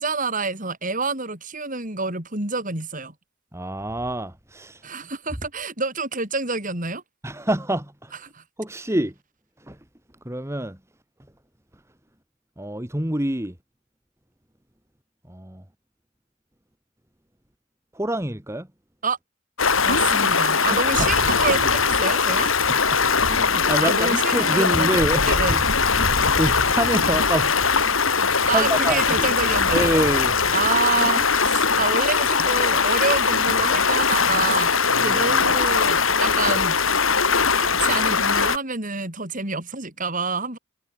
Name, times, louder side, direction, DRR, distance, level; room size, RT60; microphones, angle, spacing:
voice 1, 0.0-3.1 4.8-7.0 8.3-8.4 19.0-19.2 19.8-22.5 23.8-25.6 28.5-29.9 30.5-34.7 35.0-36.8 37.5-40.6, right 4 dB, 40° right, 5.0 m, -27 dB
voice 2, 3.5-4.9 7.2-8.2 8.6-9.1 9.6-9.8 10.2-10.8 12.6-13.6 15.3-15.6 17.9-18.7 20.6-21.1 22.7-25.7 26.0-29.3 29.7-30.4 34.9-35.4, right 1 dB, 15° right, 1.9 m, -27 dB
Stream, 19.6-38.6, left 5 dB, 70° left, 5.1 m, -20 dB
head